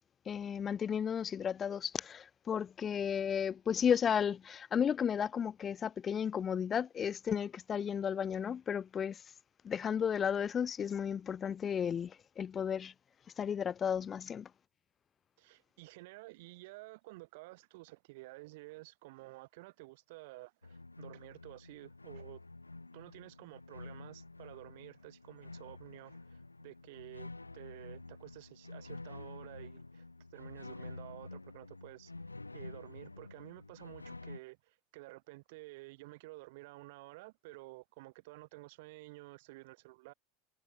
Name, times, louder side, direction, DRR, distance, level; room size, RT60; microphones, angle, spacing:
voice 1, 0.3-9.3 9.6-12.9 13.4-14.5, left 8 dB, 25° left, 0.4 m, -33 dB
voice 2, 15.4-22.4 22.9-30.0 30.3-32.3 32.5-40.1, right 22 dB, 55° right, 6.5 m, -52 dB
sound 1, 20.6-34.4, left 2 dB, 85° left, 0.8 m, -49 dB
figure-of-eight pair, 80°, 0 cm